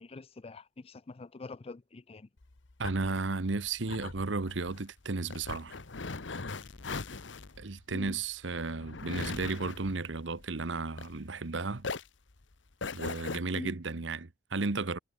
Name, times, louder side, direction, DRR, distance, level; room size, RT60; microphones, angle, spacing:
voice 1, 0.0-2.3 7.9-8.2 13.5-13.8, left 3 dB, 30° left, 0.5 m, -44 dB
sound 1, 2.4-11.5 11.8-13.4, left 4 dB, 90° left, 1.2 m, -40 dB
voice 2, 2.8-5.8 7.6-11.9 12.9-15.0, right 3 dB, 80° right, 1.1 m, -34 dB
head